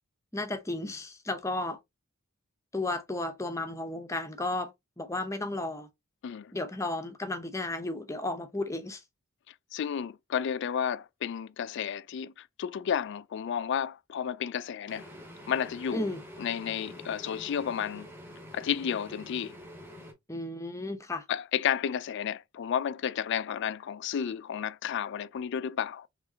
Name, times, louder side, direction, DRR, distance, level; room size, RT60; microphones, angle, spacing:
voice 1, 0.3-1.8 2.7-5.9 6.5-9.0 15.9-16.2 20.3-21.2, left 2 dB, 15° left, 0.7 m, -33 dB
voice 2, 9.7-15.1 15.5-16.1 16.4-18.1 18.5-19.5 21.3-26.1, left 8 dB, 55° left, 0.3 m, -32 dB
sound 1, 14.9-20.1, equal, 10° right, 1.1 m, -47 dB
4.8 x 3.2 x 2.7 m
head